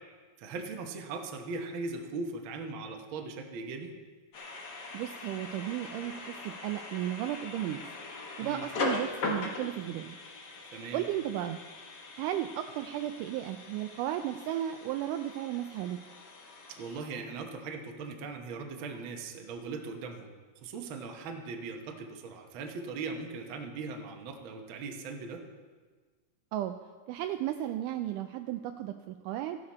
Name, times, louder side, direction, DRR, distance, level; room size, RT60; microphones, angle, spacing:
voice 1, 0.4-3.9 8.4-8.7 10.7-11.0 16.7-20.3 20.6-25.4, right 4 dB, 60° right, 3 dB, 1.3 m, -39 dB
sound 1, 4.3-17.5, left 3 dB, 75° left, 0.9 m, -40 dB
voice 2, 4.9-7.8 8.4-10.2 10.9-11.6 12.2-16.0 26.5-26.7 27.1-29.6, right 12 dB, 85° right, 6 dB, 2.0 m, -34 dB
14.5 x 11.5 x 4.2 m, 1.5 s
omnidirectional pair, 3.7 m